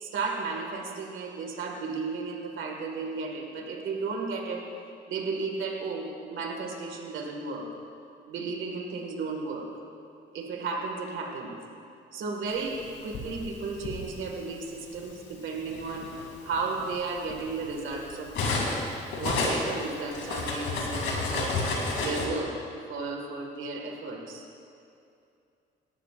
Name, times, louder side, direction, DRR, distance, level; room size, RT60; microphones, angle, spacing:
voice 1, 0.0-4.6 5.1-7.7 8.3-9.7 10.3-11.6 12.1-16.1 16.4-18.6 19.2-21.5 22.0-22.6 22.9-24.5, right 4 dB, 75° right, 1 dB, 2.0 m, -34 dB
Cutlery silverware, 12.7-14.0 15.0-15.2 15.6-18.8 19.1-22.3, left 3 dB, 80° left, 2.8 m, -31 dB
19.0 x 13.5 x 2.5 m, 2.5 s
cardioid pair, 90°, 20 cm